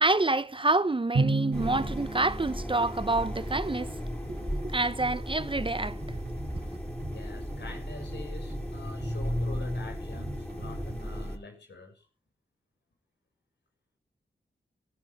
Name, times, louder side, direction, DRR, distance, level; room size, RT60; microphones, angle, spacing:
voice 1, 0.0-3.9 4.3-6.0, right 2 dB, 30° right, 0.8 m, -27 dB
Drum, 1.1-3.3, right 3 dB, 75° right, 2.6 m, -31 dB
sound 1, 1.5-11.4, equal, 10° left, 6.0 m, -35 dB
sound 2, 3.0-11.3, right 3 dB, 60° right, 3.4 m, -46 dB
voice 2, 7.1-12.0, left 3 dB, 75° left, 6.7 m, -46 dB
15.0 x 14.5 x 3.7 m
cardioid pair, 45°, 18 cm